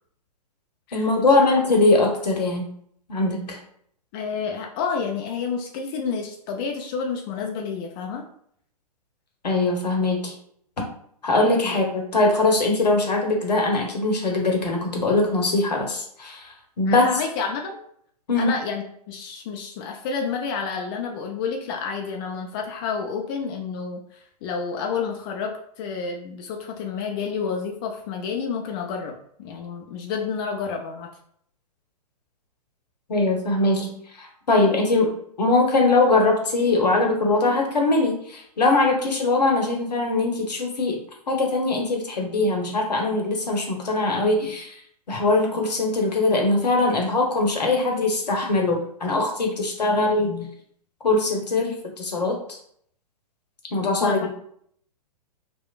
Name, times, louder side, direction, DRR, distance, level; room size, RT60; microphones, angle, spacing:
voice 1, 0.9-2.7 3.1-3.6 9.4-10.3 11.2-17.1 18.3-18.5 33.1-41.0 41.3-44.8 45.1-50.5 51.0-52.6 53.7-54.3, left 2 dB, 80° left, 1 dB, 0.8 m, -22 dB
voice 2, 4.1-8.2 11.6-11.8 16.9-17.8 18.3-29.1 29.4-31.1 54.0-54.3, left 5 dB, 35° left, 2 dB, 0.4 m, -30 dB
3.0 x 2.0 x 2.3 m, 0.65 s
figure-of-eight pair, 115°, 21 cm